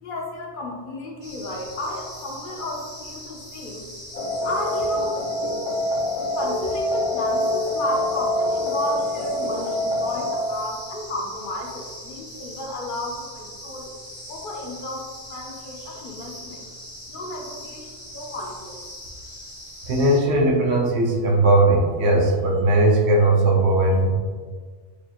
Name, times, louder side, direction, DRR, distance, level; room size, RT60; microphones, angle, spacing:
voice 1, 0.0-3.9 4.3-5.2 5.7-5.8 6.3-13.9 14.3-16.6 17.1-18.8, left 1 dB, 55° left, 0 dB, 0.7 m, -33 dB
sound 1, 1.2-20.2, equal, 85° right, 1.9 m, -41 dB
sound 2, 4.1-10.9, left 1 dB, 85° left, 1.1 m, -25 dB
voice 2, 19.8-24.1, right 2 dB, 65° right, -1 dB, 1.0 m, -18 dB
4.8 x 2.3 x 2.8 m, 1.6 s
omnidirectional pair, 1.3 m